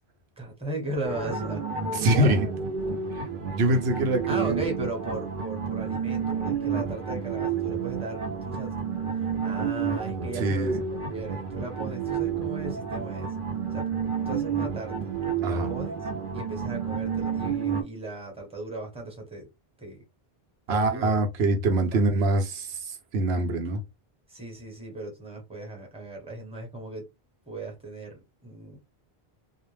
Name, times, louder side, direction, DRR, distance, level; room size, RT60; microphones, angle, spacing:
voice 1, 0.4-2.5 4.3-8.8 9.1-10.7 11.1-13.3 13.7-13.9 14.3-15.0 15.5-16.0 16.3-19.5 19.8-20.0 20.7-21.2 21.9-22.3 24.3-27.1 27.5-28.8, right 2 dB, 5° right, 0.9 m, -37 dB
sound 1, 1.0-17.8, right 6 dB, 60° right, 0.8 m, -30 dB
voice 2, 1.9-2.5 3.1-3.3 3.5-4.7 10.3-10.8 15.4-15.7 20.7-23.8, right 2 dB, 90° right, 0.9 m, -24 dB
2.4 x 2.1 x 3.2 m
omnidirectional pair, 1.0 m